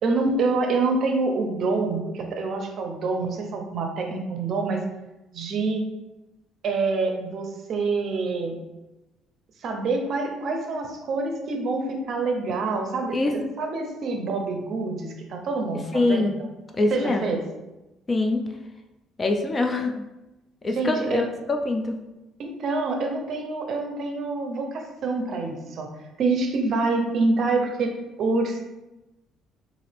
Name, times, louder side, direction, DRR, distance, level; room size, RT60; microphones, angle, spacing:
voice 1, 0.0-4.8 5.3-5.8 6.6-8.6 9.6-13.2 13.6-16.3 16.9-17.4 20.8-21.2 22.4-25.9 26.2-28.6, right 3 dB, 50° right, 3 dB, 0.6 m, -26 dB
voice 2, 15.9-16.3 16.7-17.4 18.1-18.4 19.2-20.0 20.6-22.0, left 2 dB, 20° left, 4 dB, 0.4 m, -24 dB
3.9 x 2.5 x 3.2 m, 1.0 s
cardioid pair, 130°, 0 cm